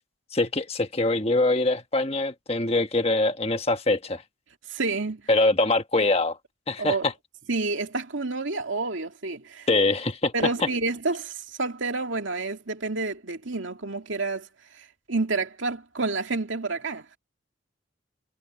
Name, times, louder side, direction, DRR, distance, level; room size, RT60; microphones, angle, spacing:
voice 1, 0.3-4.2 5.3-6.4 6.7-7.1 9.7-10.5, left 2 dB, 30° left, 1.4 m, -23 dB
voice 2, 4.7-5.3 6.8-7.0 7.5-9.7 10.3-14.5 14.7-17.0, right 3 dB, 80° right, 2.3 m, -29 dB
head